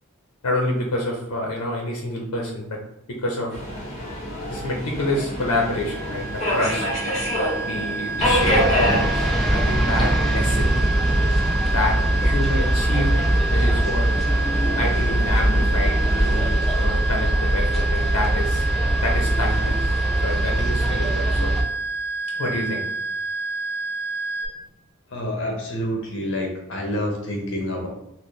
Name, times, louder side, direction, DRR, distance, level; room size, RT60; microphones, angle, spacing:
voice 1, 0.4-2.8 3.1-3.6 4.5-6.8 7.7-10.7 11.7-13.2 13.5-14.1 14.8-15.9 16.2-18.7 19.0-19.9 20.2-21.5 22.4-22.8, left 1 dB, 90° left, 0 dB, 0.6 m, -27 dB
Subway metro underground, 3.5-16.5, equal, 30° left, 1.1 m, -28 dB
sound 1, 5.4-24.5, right 3 dB, 45° right, 0.7 m, -29 dB
sound 2, 8.2-21.6, right 1 dB, ahead, 0.3 m, -22 dB
voice 2, 25.1-27.9, equal, 55° left, 0 dB, 0.9 m, -28 dB
4.2 x 2.1 x 3.2 m, 0.84 s
head